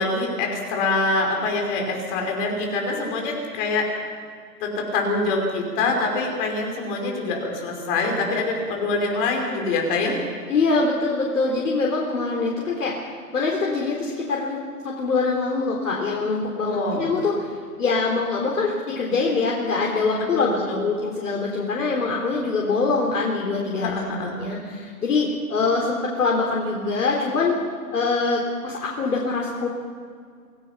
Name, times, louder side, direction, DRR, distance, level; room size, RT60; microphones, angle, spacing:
voice 1, 0.0-3.9 4.6-10.2 16.6-17.1 20.3-20.8 23.8-24.4, left 3 dB, 35° left, 1 dB, 5.4 m, -25 dB
voice 2, 10.5-12.9 13.3-14.6 14.8-17.5 17.8-27.5 27.9-29.7, left 3 dB, 75° left, -2 dB, 4.1 m, -24 dB
27.0 x 17.0 x 5.8 m, 2.1 s
hypercardioid pair, 140°, 46 cm